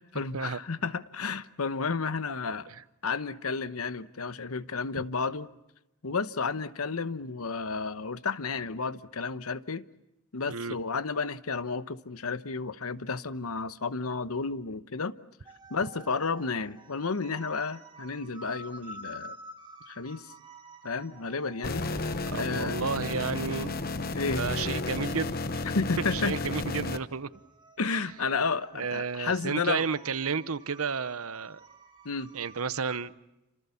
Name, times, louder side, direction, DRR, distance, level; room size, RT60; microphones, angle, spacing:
voice 1, 0.0-2.7 3.0-5.5 6.0-9.8 10.3-15.1 15.7-19.4 19.9-20.3 20.8-22.8 24.1-24.4 25.6-26.3 27.8-29.9 32.0-32.3, left 4 dB, 80° left, 1.0 m, -32 dB
sound 1, 15.4-33.0, right 2 dB, 20° right, 1.8 m, -51 dB
sound 2, 21.6-27.0, left 3 dB, 45° left, 1.0 m, -32 dB
voice 2, 22.3-23.7 24.4-25.3 26.1-27.3 28.7-31.6 32.3-33.1, right 5 dB, 80° right, 0.9 m, -32 dB
29.0 x 26.5 x 7.1 m
head